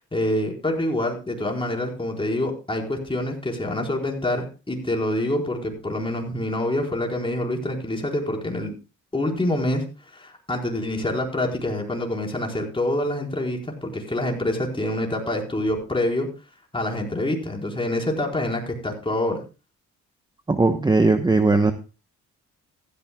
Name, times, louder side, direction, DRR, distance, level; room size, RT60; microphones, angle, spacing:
voice 1, 0.1-8.7 9.1-9.8 10.1-16.3 16.7-19.4, left 1 dB, 15° left, 0 dB, 4.5 m, -26 dB
voice 2, 20.5-21.7, right 3 dB, 15° right, 8 dB, 1.0 m, -18 dB
15.5 x 13.5 x 2.3 m, 0.32 s
cardioid pair, 90°, 30 cm